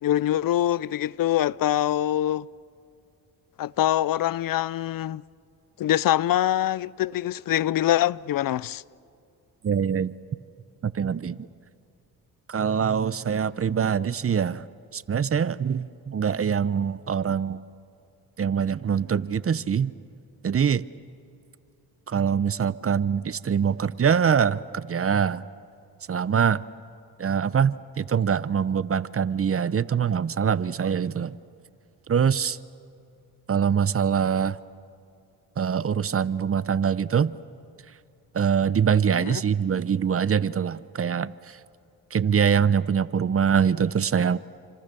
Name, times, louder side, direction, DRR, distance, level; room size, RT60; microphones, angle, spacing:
voice 1, 0.0-2.5 3.6-5.2 5.8-8.8 39.1-39.4, left 12 dB, 55° left, 0.6 m, -24 dB
voice 2, 9.6-10.1 10.8-11.4 12.5-14.6 14.9-17.6 18.4-19.9 20.4-20.8 22.1-25.4 26.1-26.6 27.2-31.4 32.1-32.6 33.5-34.6 35.6-37.3 38.3-41.3 42.1-44.4, right 7 dB, 35° right, 0.8 m, -24 dB
28.5 x 26.0 x 6.9 m
cardioid pair, 85°, 40 cm